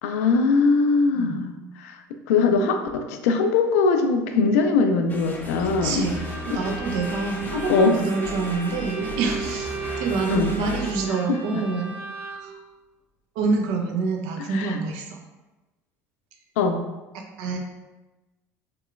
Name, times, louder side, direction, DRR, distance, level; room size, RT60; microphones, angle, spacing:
voice 1, 0.0-6.1 6.5-6.6 7.5-8.0 10.3-10.5 11.3-11.6 14.5-14.8 16.6-16.8, left 4 dB, 70° left, 6 dB, 0.3 m, -21 dB
sound 1, 5.1-10.9, left 2 dB, 20° left, 0.6 m, -35 dB
voice 2, 5.6-9.7 10.0-12.6 13.4-15.2 17.1-17.6, right 4 dB, 60° right, 2 dB, 0.5 m, -27 dB
Bowed string instrument, 6.1-12.6, right 5 dB, 25° right, 0.8 m, -36 dB
3.5 x 3.0 x 2.4 m, 1.1 s
figure-of-eight pair, 65°, 8 cm